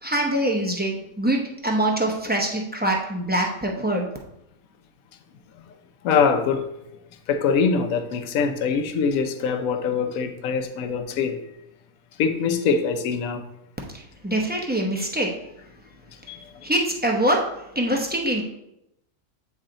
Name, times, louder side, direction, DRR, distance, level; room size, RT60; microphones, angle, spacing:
voice 1, 0.0-4.1 13.9-15.3 16.6-17.4 17.7-18.4, right 1 dB, 15° right, 0.4 m, -24 dB
voice 2, 6.0-6.6 7.3-11.4 12.2-13.4 16.3-16.5, left 5 dB, 75° left, 1.1 m, -23 dB
8.5 x 3.2 x 3.8 m
omnidirectional pair, 1.5 m